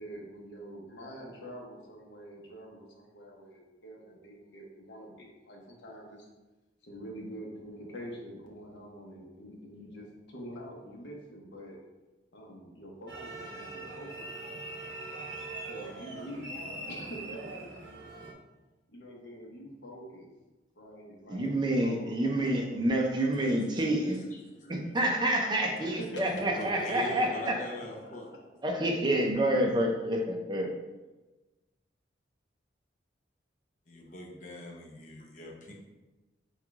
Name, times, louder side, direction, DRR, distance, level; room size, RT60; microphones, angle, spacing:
voice 1, 0.0-6.3 6.8-11.8 12.3-14.6 15.7-17.7 18.9-20.3 20.8-21.5 21.8-23.0 25.8-27.1 27.5-28.4, equal, 80° left, -2 dB, 1.0 m, -46 dB
sound 1, 13.1-18.3, right 2 dB, 75° right, 0.9 m, -42 dB
voice 2, 21.3-24.2 24.7-27.6 28.6-30.7, right 1 dB, 25° right, 1 dB, 0.5 m, -28 dB
voice 3, 23.2-24.8 25.6-28.3 33.9-35.7, left 1 dB, 45° left, -1 dB, 0.7 m, -43 dB
3.6 x 3.2 x 3.5 m, 1.1 s
head